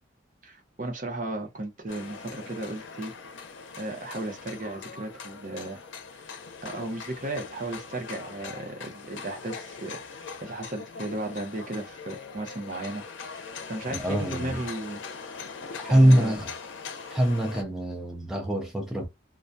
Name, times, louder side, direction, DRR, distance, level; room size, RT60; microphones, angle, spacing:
voice 1, 0.4-3.1 3.8-5.8 6.6-13.0 13.3-15.0 15.9-16.4, right 2 dB, 45° right, 0.7 m, -35 dB
sound 1, 1.9-17.6, left 5 dB, 80° left, 0.5 m, -41 dB
voice 2, 14.0-14.6 15.8-16.5 17.1-19.1, right 1 dB, ahead, 0.5 m, -23 dB
2.3 x 2.1 x 2.6 m
head